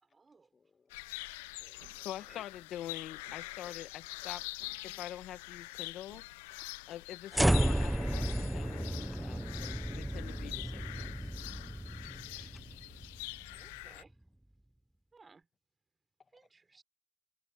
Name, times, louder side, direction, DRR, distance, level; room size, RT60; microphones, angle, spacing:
voice 1, 0.0-0.5 2.2-2.4 12.3-12.5 13.5-14.1 15.1-15.5 16.3-16.8, right 4 dB, 35° right, 4.1 m, -60 dB
voice 2, 0.5-1.3 1.6-2.1 3.6-3.7 4.9-5.0 12.1-12.6, left 5 dB, 40° left, 2.1 m, -65 dB
sound 1, 0.9-14.0, left 21 dB, 85° left, 0.8 m, -45 dB
sound 2, 1.8-2.2 3.2-3.5 4.6-4.9 6.0-6.4 7.5-8.0 9.3-9.6, right 21 dB, 85° right, 1.7 m, -61 dB
voice 3, 1.9-4.5 4.8-6.2 6.9-11.3, left 12 dB, 70° left, 1.4 m, -45 dB
sound 3, 7.3-13.6, right 1 dB, 5° right, 0.7 m, -33 dB
hypercardioid pair, 45°, 0 cm